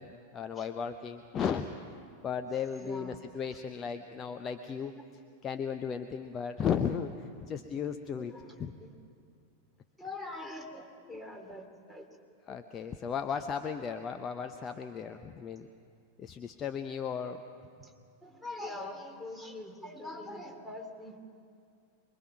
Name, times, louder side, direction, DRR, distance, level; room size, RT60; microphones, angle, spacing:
voice 1, 0.0-1.7 2.2-4.9 5.4-8.3 8.6-8.7 12.5-15.7 16.2-17.4, left 7 dB, 25° left, 7 dB, 0.8 m, -35 dB
voice 2, 2.8-3.2 4.8-5.0 8.1-8.9 10.0-12.1 12.5-12.6 17.8-17.9 18.2-21.2, left 2 dB, 5° left, 2 dB, 2.7 m, -44 dB
25.0 x 22.5 x 6.0 m, 2.3 s
figure-of-eight pair, 90°, 0 cm